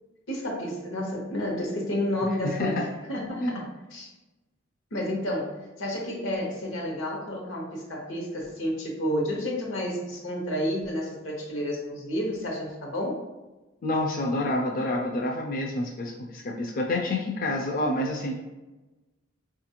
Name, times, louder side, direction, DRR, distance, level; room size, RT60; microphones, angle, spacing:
voice 1, 0.3-2.8 3.1-4.1 4.9-13.2, left 1 dB, 85° left, -1 dB, 1.0 m, -30 dB
voice 2, 2.4-2.8 3.3-3.6 13.8-18.4, left 1 dB, 45° left, -1 dB, 0.4 m, -28 dB
4.1 x 2.5 x 2.8 m, 1.1 s
head